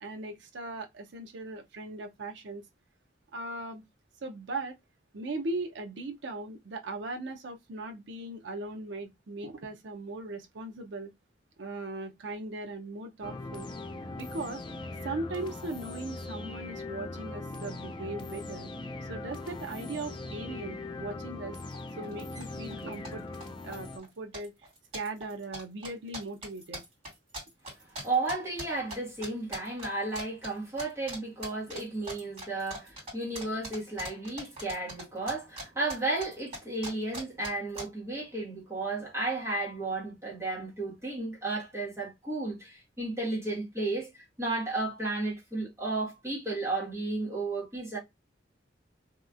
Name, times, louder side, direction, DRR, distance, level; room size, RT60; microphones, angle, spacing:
voice 1, 0.0-2.6 3.3-3.8 4.2-4.7 5.1-11.1 11.6-13.7 14.2-14.6 15.0-18.7 19.1-21.6 22.0-23.2 23.6-24.5 24.9-26.8, right 2 dB, 70° right, 0.6 m, -38 dB
sound 1, 13.2-24.0, left 2 dB, 25° left, 0.4 m, -40 dB
sound 2, 21.7-21.8 22.0-22.4 22.7-23.4 23.7-24.1 24.3-29.0 29.2-29.9 30.1-30.5 30.8-31.2 31.4-35.6 35.9-37.8, right 1 dB, 35° right, 2.3 m, -40 dB
voice 2, 28.0-48.0, right 2 dB, 15° right, 1.4 m, -33 dB
3.0 x 2.9 x 2.4 m
head